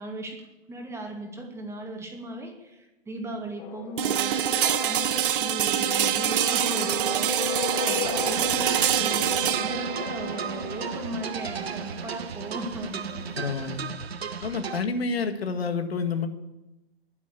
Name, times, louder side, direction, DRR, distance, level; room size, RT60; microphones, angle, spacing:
voice 1, 0.0-13.4, right 1 dB, 10° right, 2 dB, 2.2 m, -37 dB
sound 1, 3.6-12.2, left 12 dB, 30° left, 0.8 m, -37 dB
sound 2, 4.0-13.9, right 9 dB, 60° right, 1.0 m, -26 dB
sound 3, 8.0-14.8, right 6 dB, 75° right, 1.3 m, -35 dB
voice 2, 13.3-13.8 14.4-16.3, left 4 dB, 75° left, 7 dB, 2.0 m, -29 dB
10.5 x 10.5 x 8.5 m, 0.96 s
hypercardioid pair, 130°, 31 cm